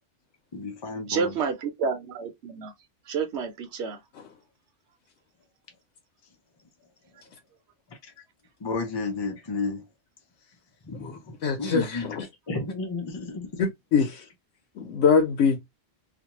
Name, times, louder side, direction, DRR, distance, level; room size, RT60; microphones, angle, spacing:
voice 1, 0.5-1.3 8.0-8.1 8.6-9.8 10.9-11.2 11.6-12.2 12.5-13.6, left 3 dB, 40° left, 0.4 m, -32 dB
voice 2, 1.1-2.7 3.1-4.0, right 5 dB, 65° right, 1.0 m, -29 dB
voice 3, 10.9-12.3 13.6-14.2 14.8-15.6, left 6 dB, 90° left, 1.0 m, -24 dB
2.5 x 2.2 x 2.8 m
omnidirectional pair, 1.2 m